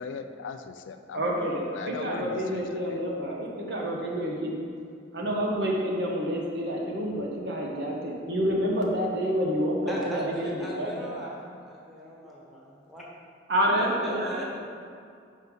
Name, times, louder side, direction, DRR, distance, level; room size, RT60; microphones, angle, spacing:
voice 1, 0.0-3.0, left 5 dB, 85° left, 8 dB, 0.4 m, -39 dB
voice 2, 1.1-4.6 5.1-11.1 13.5-14.6, equal, 60° right, -1 dB, 1.1 m, -28 dB
voice 3, 9.9-13.0 13.8-14.6, equal, ahead, -5 dB, 1.1 m, -39 dB
5.4 x 4.7 x 5.4 m, 2.3 s
head